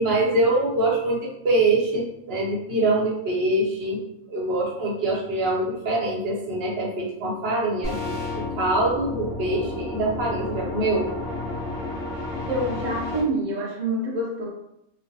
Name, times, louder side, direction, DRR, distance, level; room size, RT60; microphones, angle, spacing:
voice 1, 0.0-4.0 4.3-11.1, right 2 dB, 50° right, -4 dB, 0.8 m, -24 dB
sound 1, 7.8-13.2, left 2 dB, 60° left, 1.3 m, -31 dB
voice 2, 12.5-14.5, right 1 dB, 85° right, -2 dB, 0.4 m, -26 dB
3.1 x 2.1 x 2.6 m, 0.80 s
omnidirectional pair, 1.6 m